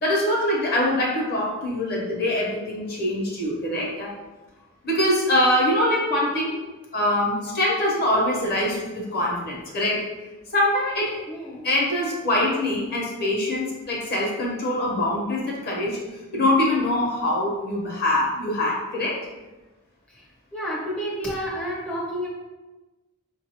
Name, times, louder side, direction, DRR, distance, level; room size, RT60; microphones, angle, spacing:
voice 1, 0.0-4.1 4.8-6.6 6.9-10.0 10.5-11.2 11.6-16.0 16.3-19.2, left 1 dB, 45° left, -3 dB, 0.9 m, -23 dB
voice 2, 11.3-11.6 20.1-20.2 20.5-22.3, equal, 5° left, -6 dB, 0.5 m, -30 dB
4.7 x 2.6 x 2.8 m, 1.1 s
head